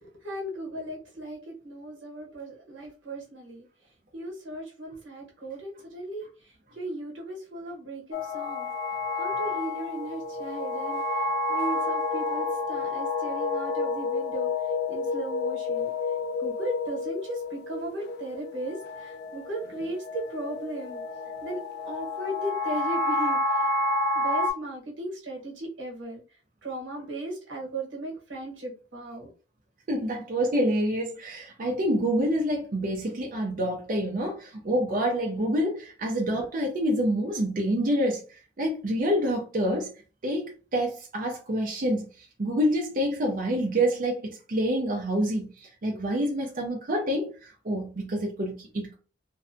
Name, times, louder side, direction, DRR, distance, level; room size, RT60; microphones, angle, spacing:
voice 1, 0.0-3.6 4.1-6.3 6.7-8.7 9.2-14.5 14.9-15.9 16.4-21.0 21.4-23.7 24.1-26.2 26.6-29.3, right 1 dB, 85° right, 1.1 m, -37 dB
sound 1, 8.1-24.5, left 2 dB, 55° left, 0.3 m, -30 dB
voice 2, 29.9-39.9 40.2-48.9, equal, 45° right, 0.5 m, -27 dB
2.6 x 2.1 x 2.6 m
head